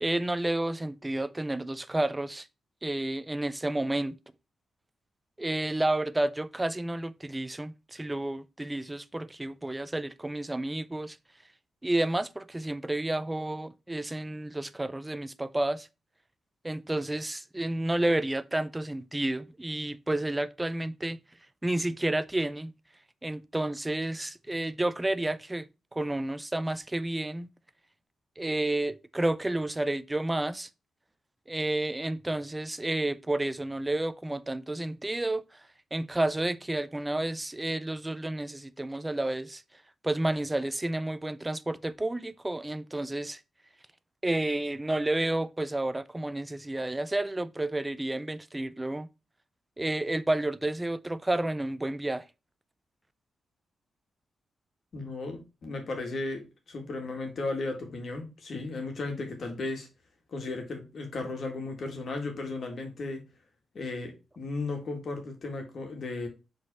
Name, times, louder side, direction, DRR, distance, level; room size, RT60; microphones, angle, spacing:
voice 1, 0.0-2.5 2.8-4.2 5.4-11.2 11.8-15.9 16.6-21.2 21.6-22.7 23.2-27.5 28.4-30.7 31.5-35.4 35.9-39.6 40.0-43.4 44.2-49.1 49.8-52.3, right 1 dB, 10° right, 0.4 m, -30 dB
voice 2, 54.9-59.9 60.3-63.2 63.7-66.3, left 3 dB, 45° left, 1.8 m, -35 dB
5.2 x 3.9 x 5.4 m
wide cardioid pair, 155°, 0 cm